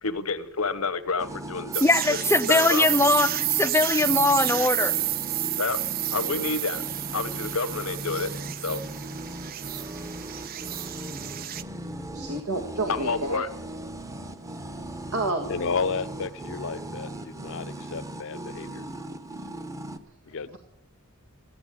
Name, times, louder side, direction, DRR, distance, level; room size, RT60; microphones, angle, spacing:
voice 1, 0.0-2.2 2.5-2.9 5.6-5.8 6.1-6.8 7.1-8.3 8.6-8.8 12.9-13.5, left 4 dB, 85° left, 1.1 m, -29 dB
sound 1, 1.2-20.0, right 1 dB, 15° right, 0.9 m, -38 dB
sound 2, 1.7-11.6, right 14 dB, 45° right, 0.5 m, -30 dB
voice 2, 1.8-5.0, left 2 dB, 10° left, 0.5 m, -21 dB
voice 3, 12.1-13.4 15.1-15.5 20.5-20.6, right 2 dB, 85° right, 1.8 m, -29 dB
voice 4, 15.5-18.8 20.3-20.6, left 5 dB, 60° left, 0.7 m, -32 dB
15.0 x 11.5 x 8.4 m
head